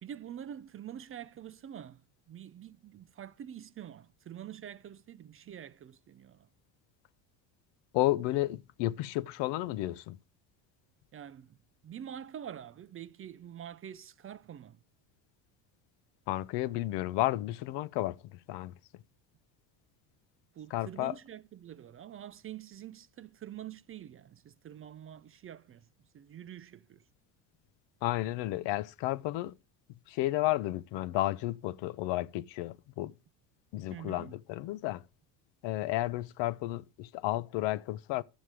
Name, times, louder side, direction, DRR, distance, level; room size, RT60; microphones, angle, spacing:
voice 1, 0.0-6.5 11.1-11.6 11.8-14.8 20.5-25.9 26.1-27.0 33.9-34.4, right 10 dB, 30° right, 0.4 m, -46 dB
voice 2, 7.9-10.2 16.3-18.8 20.7-21.1 28.0-29.5 30.1-33.1 33.7-35.0 35.6-38.2, left 16 dB, 70° left, 0.8 m, -32 dB
11.5 x 7.4 x 4.8 m
supercardioid pair, 105°, 45 cm